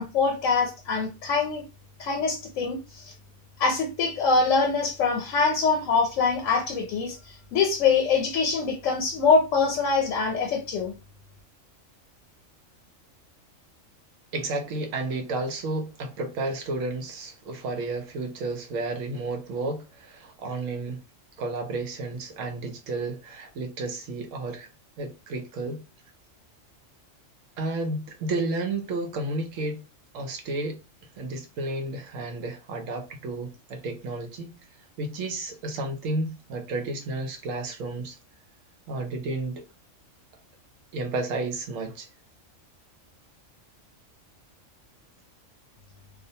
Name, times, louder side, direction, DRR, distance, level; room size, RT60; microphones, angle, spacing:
voice 1, 0.0-1.6 2.0-3.1 3.6-10.9, left 4 dB, 75° left, 1.0 m, -24 dB
voice 2, 14.3-21.0 21.4-24.7 25.0-25.8 27.6-29.8 30.1-30.8 31.2-34.6 35.0-38.2 38.9-39.6 40.9-42.1, right 2 dB, 85° right, 1.0 m, -32 dB
2.5 x 2.0 x 2.7 m
omnidirectional pair, 1.3 m